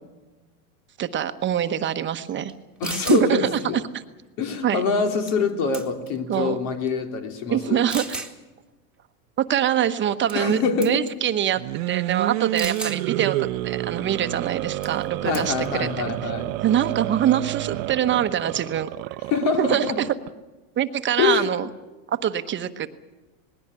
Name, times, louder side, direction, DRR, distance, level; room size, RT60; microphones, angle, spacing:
voice 1, 1.0-2.5 3.1-3.6 4.6-4.8 6.3-6.6 7.5-8.2 9.5-13.3 13.6-15.9 16.2-16.3 16.6-19.2 19.6-20.1 20.8-21.7 22.1-22.9, right 10 dB, 25° right, 9 dB, 1.0 m, -24 dB
sound 1, 2.5-2.6 2.8-3.3 5.3-5.5 5.7-6.2 6.9-7.0 7.9-8.3 10.3-10.5 10.8-11.1 12.6-13.0 14.8-15.0 15.3-15.7, right 3 dB, ahead, 2.0 m, -33 dB
voice 2, 2.8-3.8 4.4-7.9 10.3-11.0 15.2-16.5 19.3-20.0 21.2-21.5, left 5 dB, 60° left, 5 dB, 3.2 m, -25 dB
sound 2, 11.5-20.3, right 18 dB, 70° right, 0.8 m, -29 dB
20.5 x 16.5 x 9.7 m, 1.1 s
supercardioid pair, 135°, 43 cm